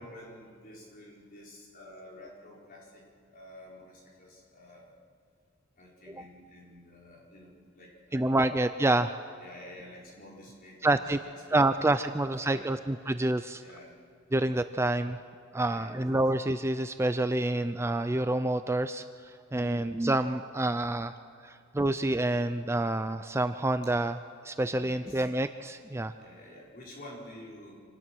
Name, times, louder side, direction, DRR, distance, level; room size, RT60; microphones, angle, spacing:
voice 1, 0.0-3.0 3.3-4.9 5.8-8.4 8.8-8.9 9.4-12.7 13.6-13.9 15.5-16.2 19.6-19.9 24.7-25.3 26.2-27.8, left 1 dB, 45° left, -4 dB, 4.9 m, -50 dB
voice 2, 8.1-9.1 10.8-11.2 11.5-13.6 14.3-15.2 15.5-19.0 19.5-21.2 21.4-24.2 24.4-26.1, right 2 dB, 15° right, 10 dB, 0.4 m, -28 dB
26.0 x 18.5 x 6.2 m, 2.3 s
head